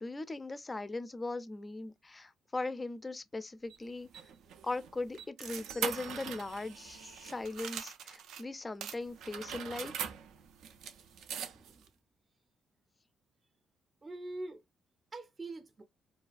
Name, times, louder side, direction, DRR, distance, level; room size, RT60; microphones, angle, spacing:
voice 1, 0.0-4.1 4.6-9.9, left 2 dB, 25° left, 0.3 m, -39 dB
sound 1, 3.7-8.4 8.8-11.9, right 8 dB, 85° right, 0.3 m, -42 dB
voice 2, 11.4-11.8 14.0-14.6 15.1-15.8, right 2 dB, 30° right, 0.5 m, -44 dB
2.3 x 2.3 x 2.4 m
cardioid pair, 90°, 0 cm